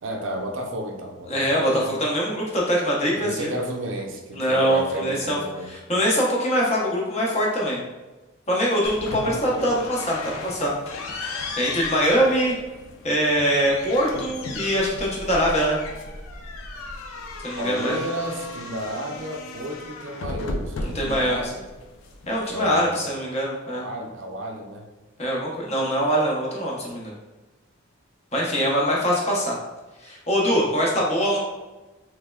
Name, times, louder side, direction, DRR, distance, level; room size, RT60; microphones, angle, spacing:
voice 1, 0.0-2.0 3.1-5.7 17.6-21.6 22.4-23.1 23.6-24.9, right 1 dB, 65° right, 2 dB, 0.5 m, -32 dB
voice 2, 1.3-3.5 4.3-5.4 5.7-7.8 8.5-10.7 11.6-12.5 13.0-15.8 17.4-18.0 20.8-21.4 22.3-23.8 25.2-27.1 28.3-29.6 30.0-31.4, equal, 30° left, -3 dB, 0.7 m, -23 dB
sound 1, 8.8-22.9, left 2 dB, 80° left, 0.4 m, -35 dB
3.4 x 3.1 x 2.2 m, 1.2 s
head